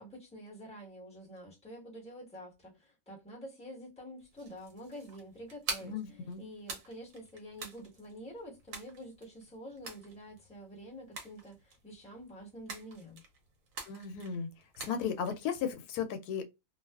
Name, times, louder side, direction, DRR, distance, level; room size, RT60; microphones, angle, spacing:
voice 1, 0.0-13.2, equal, 5° left, 1.0 m, -48 dB
sound 1, 4.2-15.7, right 4 dB, 65° right, 1.1 m, -46 dB
voice 2, 5.8-6.4 13.9-14.5 14.8-16.4, left 7 dB, 90° left, 1.1 m, -35 dB
2.6 x 2.3 x 2.3 m
omnidirectional pair, 1.6 m